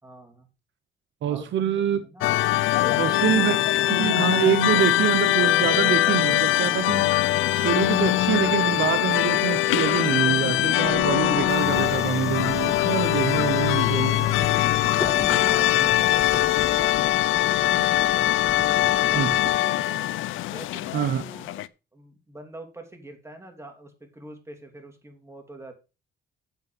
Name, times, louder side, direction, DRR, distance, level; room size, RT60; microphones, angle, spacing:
voice 1, 0.0-0.5 1.3-2.4 2.7-3.6 14.8-18.3 18.7-20.1 20.4-25.7, right 1 dB, 15° right, 3.0 m, -44 dB
voice 2, 1.2-2.0 3.0-3.6 3.9-14.3 19.1-19.3 20.9-21.2, right 10 dB, 70° right, 1.0 m, -25 dB
sound 1, 2.2-21.7, left 15 dB, 85° left, 0.5 m, -22 dB
Subway metro underground, 10.8-19.6, left 3 dB, 15° left, 0.8 m, -38 dB
8.5 x 6.9 x 5.2 m
cardioid pair, 90°, 20 cm